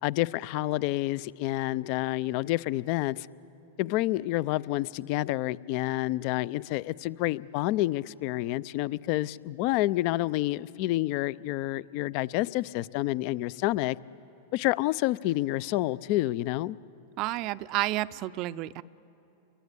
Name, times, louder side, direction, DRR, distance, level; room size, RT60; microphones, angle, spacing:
voice 1, 0.0-3.3 3.8-14.0 14.5-16.8, left 17 dB, 55° left, 20 dB, 0.6 m, -28 dB
voice 2, 17.2-18.8, right 16 dB, 50° right, 17 dB, 0.5 m, -30 dB
30.0 x 23.0 x 8.3 m, 2.9 s
hypercardioid pair, 105°, 0 cm